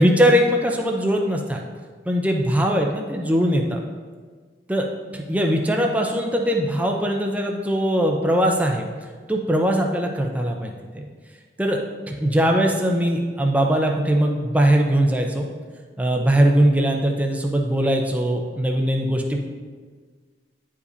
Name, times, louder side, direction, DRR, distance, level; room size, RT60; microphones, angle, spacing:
voice 1, 0.0-1.6 2.1-3.8 4.7-4.9 5.1-8.8 9.3-11.0 11.6-11.8 12.1-15.5 16.0-19.4, equal, 10° right, 1 dB, 0.5 m, -20 dB
10.0 x 4.9 x 2.7 m, 1.5 s
head